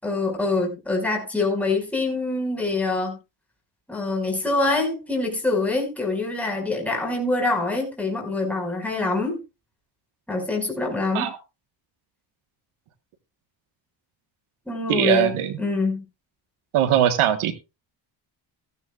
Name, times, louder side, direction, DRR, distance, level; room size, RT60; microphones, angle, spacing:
voice 1, 0.0-3.2 3.9-9.4 10.3-11.3 14.6-16.0, left 3 dB, 5° left, 5.2 m, -25 dB
voice 2, 14.9-15.6 16.7-17.5, right 11 dB, 85° right, 1.4 m, -20 dB
15.0 x 13.0 x 2.4 m
cardioid pair, 80°, 49 cm